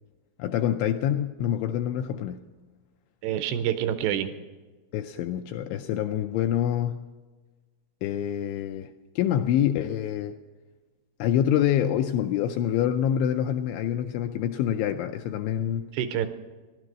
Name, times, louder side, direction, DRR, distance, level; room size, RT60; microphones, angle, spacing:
voice 1, 0.4-2.4 4.9-7.0 8.0-8.9 9.2-10.4 11.2-15.8, left 10 dB, 85° left, 5 dB, 2.7 m, -26 dB
voice 2, 3.2-4.3 15.9-16.3, right 10 dB, 80° right, 10 dB, 2.5 m, -27 dB
16.0 x 12.0 x 6.1 m, 1.3 s
omnidirectional pair, 5.7 m